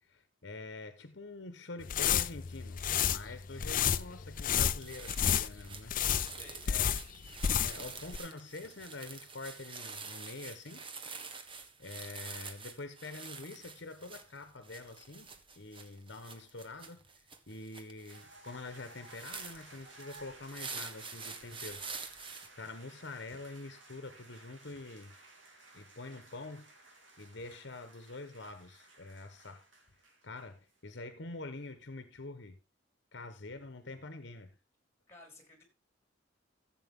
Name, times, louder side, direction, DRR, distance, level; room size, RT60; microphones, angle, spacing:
voice 1, 0.0-5.9 6.7-6.9 7.6-10.9 11.8-15.3 15.6-17.0 17.5-21.8 22.6-25.1 25.7-26.7 27.2-29.7 30.2-32.6 33.1-34.6, left 2 dB, 65° left, 1.2 m, -46 dB
sound 1, 1.8-7.9 8.1-8.2, left 9 dB, 45° left, 0.5 m, -31 dB
sound 2, 4.4-4.5 4.8-22.5, right 5 dB, 25° right, 1.4 m, -47 dB
voice 2, 6.0-6.7 35.1-35.6, left 2 dB, 15° left, 4.8 m, -55 dB
sound 3, 18.1-30.8, right 2 dB, 75° right, 3.9 m, -57 dB
15.0 x 8.0 x 3.6 m
head